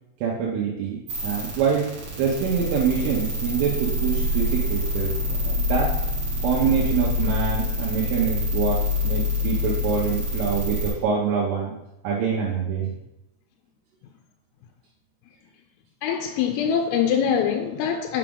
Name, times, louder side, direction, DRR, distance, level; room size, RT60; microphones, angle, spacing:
voice 1, 0.2-1.9 2.2-5.1 5.4-5.9 6.4-11.7 12.0-13.0, right 6 dB, 75° right, 3.4 m, -25 dB
sound 1, 1.1-10.9, left 2 dB, 55° right, 2.4 m, -26 dB
voice 2, 16.0-18.2, left 7 dB, 85° left, 3.2 m, -23 dB
7.4 x 6.0 x 3.8 m
omnidirectional pair, 6.0 m